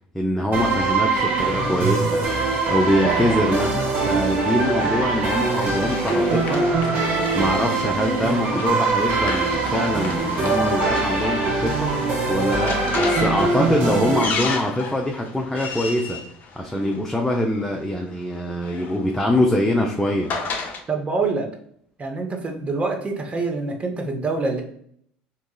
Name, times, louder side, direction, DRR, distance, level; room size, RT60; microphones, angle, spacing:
voice 1, 0.1-2.2 2.7-6.6 7.3-12.0 12.3-16.2 16.5-20.3, left 1 dB, 5° left, 1 dB, 0.5 m, -23 dB
sound 1, 0.5-14.2, right 3 dB, 45° right, 1.1 m, -22 dB
voice 2, 3.0-3.5 4.2-4.3 20.9-21.5 22.0-24.6, right 3 dB, 30° right, 3 dB, 0.8 m, -26 dB
Run, 4.7-17.3 18.3-20.8, left 4 dB, 45° left, 0.7 m, -34 dB
3.6 x 2.9 x 2.3 m, 0.65 s
hypercardioid pair, 80°, 4 cm